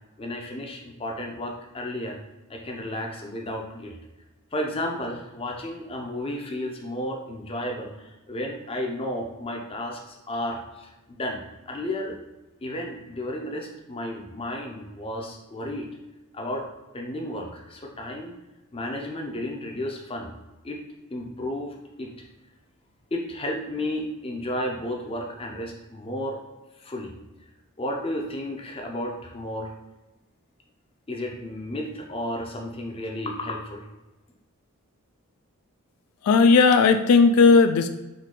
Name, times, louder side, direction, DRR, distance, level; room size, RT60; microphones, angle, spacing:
voice 1, 0.2-2.2 2.5-4.0 4.5-12.2 12.6-15.9 16.3-16.7 16.9-18.4 18.7-20.3 20.6-20.8 21.1-22.3 23.1-26.4 26.8-27.1 27.8-29.7 31.1-33.8, left 1 dB, 25° left, 1 dB, 0.5 m, -33 dB
voice 2, 36.2-37.9, left 4 dB, 80° left, 10 dB, 0.3 m, -16 dB
3.8 x 2.7 x 3.7 m, 1.1 s
head